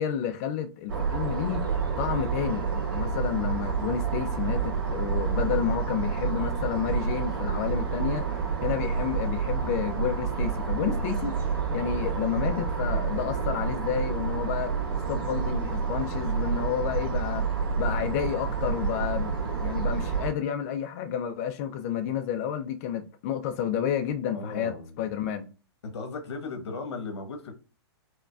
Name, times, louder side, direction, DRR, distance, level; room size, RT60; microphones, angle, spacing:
voice 1, 0.0-14.7 15.1-17.4 17.8-25.5, left 9 dB, 35° left, 0.3 m, -30 dB
sound 1, 0.9-20.3, right 5 dB, 50° right, 1.9 m, -29 dB
voice 2, 24.3-25.0 25.8-27.5, left 3 dB, 85° left, 1.1 m, -36 dB
4.7 x 2.2 x 2.3 m
hypercardioid pair, 155°, 14 cm